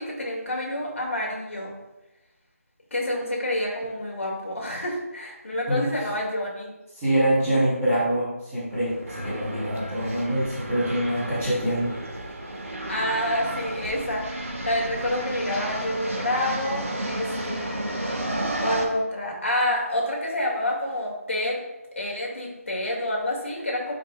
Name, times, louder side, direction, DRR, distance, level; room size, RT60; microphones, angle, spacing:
voice 1, 0.0-1.7 2.9-6.7 12.9-17.9 18.6-21.6 22.0-23.9, left 1 dB, 55° left, -2 dB, 2.3 m, -28 dB
voice 2, 6.9-11.9, right 1 dB, 5° right, -16 dB, 0.9 m, -25 dB
sound 1, 8.7-18.8, right 1 dB, 60° right, 1.5 m, -32 dB
10.0 x 5.3 x 2.4 m, 0.97 s
figure-of-eight pair, 180°, 8 cm